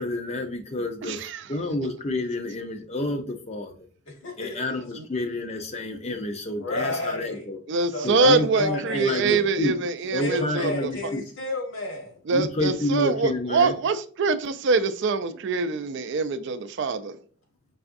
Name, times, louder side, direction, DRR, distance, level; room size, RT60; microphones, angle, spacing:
voice 1, 0.0-1.2 1.5-3.7 4.4-7.6 8.0-9.7 10.1-11.2 12.3-13.7, left 2 dB, 30° left, 0.6 m, -29 dB
voice 2, 1.0-1.4 7.7-10.7 12.3-17.2, right 4 dB, 55° right, 0.4 m, -24 dB
voice 3, 4.1-4.6 6.6-9.5 10.2-12.2 15.7-15.8, left 2 dB, 60° left, 1.4 m, -32 dB
4.8 x 3.4 x 2.6 m
head